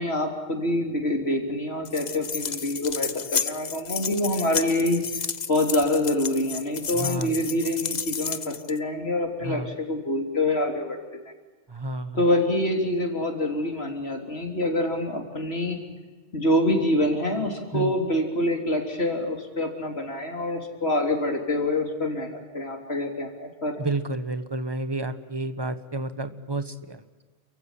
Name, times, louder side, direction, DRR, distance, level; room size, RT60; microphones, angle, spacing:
voice 1, 0.0-5.0 5.5-9.6 9.9-11.0 12.1-15.9 16.3-23.7, left 1 dB, 70° left, 3 dB, 3.9 m, -26 dB
sound 1, 1.8-8.8, left 6 dB, 45° left, 0.9 m, -32 dB
voice 2, 6.9-7.4 9.4-9.7 11.7-12.3 17.7-18.0 23.8-27.0, right 2 dB, 25° right, 11 dB, 1.4 m, -31 dB
29.0 x 15.5 x 10.0 m, 1.3 s
omnidirectional pair, 1.1 m